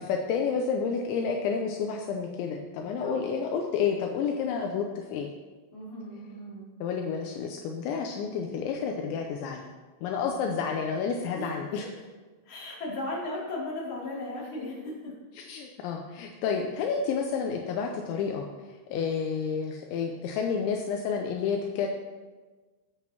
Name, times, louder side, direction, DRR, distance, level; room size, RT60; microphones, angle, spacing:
voice 1, 0.0-5.3 6.8-9.6 10.0-11.9 15.4-18.5 18.9-21.9, left 6 dB, 80° left, 2 dB, 2.8 m, -30 dB
voice 2, 5.7-6.7 10.1-10.5 11.3-11.6 12.4-15.1, left 1 dB, 35° left, -6 dB, 3.4 m, -36 dB
18.0 x 8.1 x 3.0 m, 1.3 s
omnidirectional pair, 5.7 m